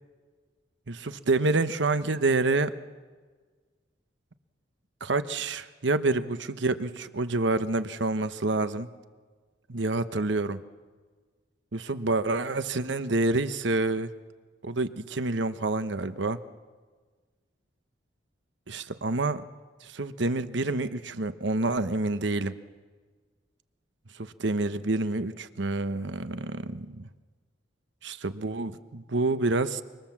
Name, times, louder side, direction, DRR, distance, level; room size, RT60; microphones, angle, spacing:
voice 1, 0.9-2.7 5.0-8.9 9.7-10.6 11.7-14.1 14.6-16.4 18.7-19.4 19.8-22.5 24.2-27.1 28.0-29.8, right 2 dB, 70° right, 11 dB, 1.0 m, -28 dB
25.5 x 24.0 x 7.4 m, 1.5 s
head